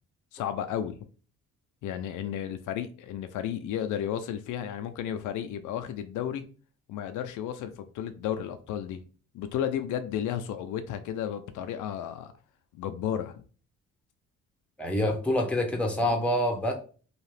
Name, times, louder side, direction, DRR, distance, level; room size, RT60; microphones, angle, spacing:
voice 1, 0.3-1.0 1.8-6.4 6.9-9.0 9.3-12.3 12.7-13.4 16.0-16.1, left 9 dB, 80° left, 0.5 m, -33 dB
voice 2, 14.8-16.7, left 1 dB, 5° left, 0.8 m, -26 dB
2.7 x 2.3 x 3.2 m
cardioid pair, 90°, 30 cm